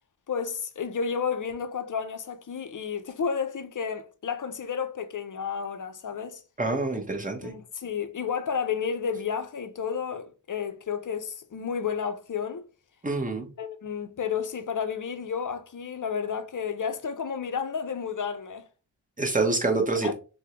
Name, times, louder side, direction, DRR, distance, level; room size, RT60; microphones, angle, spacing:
voice 1, 0.3-6.4 7.4-12.7 13.6-18.7 20.0-20.1, left 6 dB, 45° left, 0.5 m, -31 dB
voice 2, 6.6-7.5 13.0-13.5 19.2-20.1, right 3 dB, 20° right, 0.7 m, -26 dB
3.5 x 2.1 x 2.8 m
wide cardioid pair, 80°, 45 cm